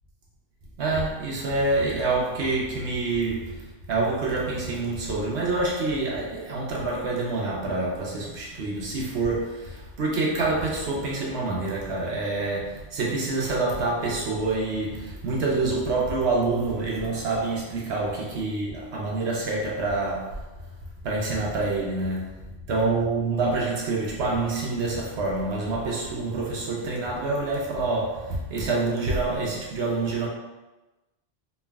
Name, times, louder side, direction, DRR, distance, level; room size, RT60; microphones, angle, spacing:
voice 1, 0.8-20.4 21.0-22.4 22.7-30.3, right 3 dB, 80° right, -3 dB, 0.9 m, -27 dB
3.2 x 2.4 x 2.2 m, 1.1 s
omnidirectional pair, 1.1 m